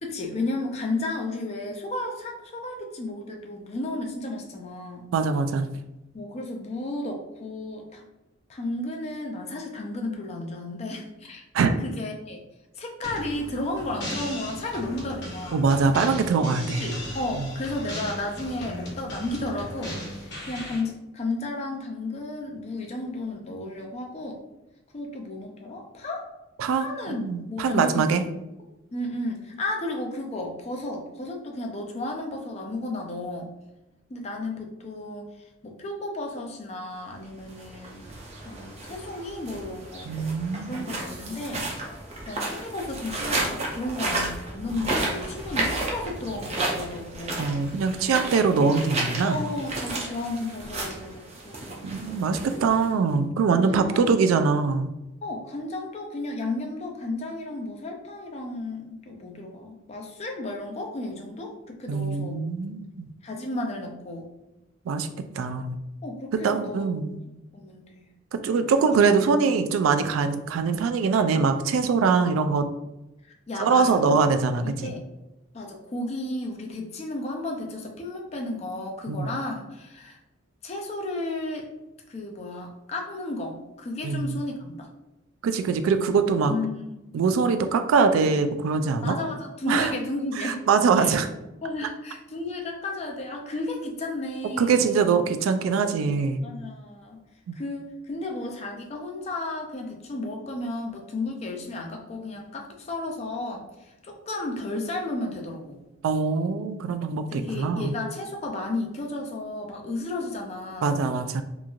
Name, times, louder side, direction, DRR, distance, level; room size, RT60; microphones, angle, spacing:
voice 1, 0.0-5.1 6.1-8.0 8.5-11.4 11.8-12.4 12.8-15.7 16.7-24.4 24.9-26.3 26.7-28.2 28.9-33.5 34.1-35.3 35.6-38.1 38.4-40.1 40.7-41.7 42.3-47.5 49.2-52.0 52.5-52.6 53.5-54.0 55.2-62.4 63.2-64.3 66.0-66.9 67.5-68.1 68.6-68.7 73.5-74.1 74.6-75.0 75.5-80.2 80.6-81.7 82.1-84.9 86.4-86.9 89.0-90.6 91.0-91.2 91.6-94.9 96.4-97.2 97.5-105.8 107.3-111.0, left 2 dB, 35° left, 1 dB, 0.4 m, -33 dB
voice 2, 5.1-5.7 11.5-11.8 15.5-16.9 17.4-17.5 26.6-28.2 40.1-40.9 47.4-49.4 51.8-54.9 61.9-63.1 64.9-65.1 65.4-65.8 66.3-67.2 68.3-72.7 73.6-74.9 79.1-79.3 84.0-84.4 85.4-86.6 87.1-89.2 89.7-89.9 90.4-91.3 94.6-96.4 97.5-97.6 106.0-108.0 110.8-111.4, right 5 dB, 90° right, 9 dB, 0.3 m, -23 dB
sound 1, 13.0-20.8, equal, 55° left, 1.0 m, -37 dB
sound 2, 37.4-53.1, right 2 dB, 30° right, 0.5 m, -33 dB
3.0 x 2.5 x 2.3 m, 0.95 s
head